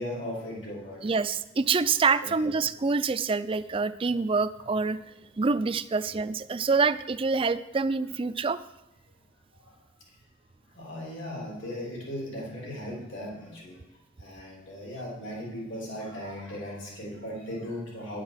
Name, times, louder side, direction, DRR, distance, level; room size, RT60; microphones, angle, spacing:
voice 1, 0.0-1.0 2.2-2.6 5.2-5.3 6.0-6.1 10.7-13.8 14.2-18.2, left 1 dB, 75° left, -4 dB, 3.2 m, -37 dB
voice 2, 1.0-5.0 5.4-8.6, right 4 dB, 30° right, 13 dB, 0.4 m, -26 dB
10.0 x 7.4 x 6.4 m, 0.95 s
head